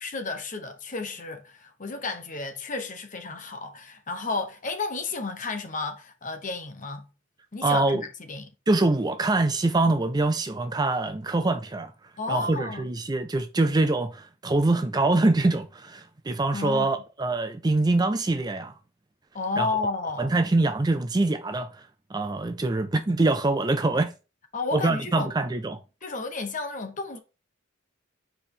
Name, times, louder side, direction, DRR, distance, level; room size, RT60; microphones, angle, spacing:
voice 1, 0.0-7.1 7.5-8.5 12.2-12.9 16.5-17.0 19.3-20.3 24.5-25.3 26.0-27.2, left 3 dB, 40° left, 1.0 m, -32 dB
voice 2, 7.6-8.0 8.7-11.9 12.3-18.7 19.6-19.7 20.2-21.7 22.1-24.1 24.7-25.8, right 2 dB, 20° right, 0.4 m, -24 dB
5.1 x 4.4 x 5.4 m
head